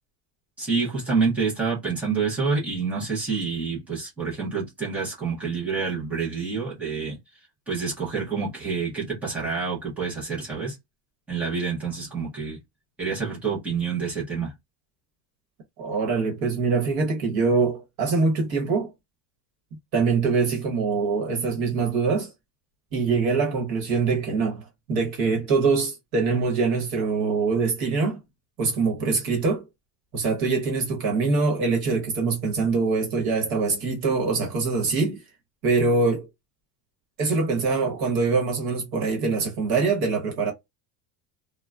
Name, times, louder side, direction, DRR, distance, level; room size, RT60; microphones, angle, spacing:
voice 1, 0.6-7.2 7.7-10.7 11.3-12.6 13.0-14.5, right 5 dB, 5° right, 0.3 m, -27 dB
voice 2, 15.8-18.9 19.9-22.3 22.9-28.2 28.6-29.6 30.1-35.2 35.6-36.3 37.2-40.5, right 4 dB, 45° right, 0.9 m, -24 dB
2.2 x 2.0 x 3.5 m
cardioid pair, 175°, 49 cm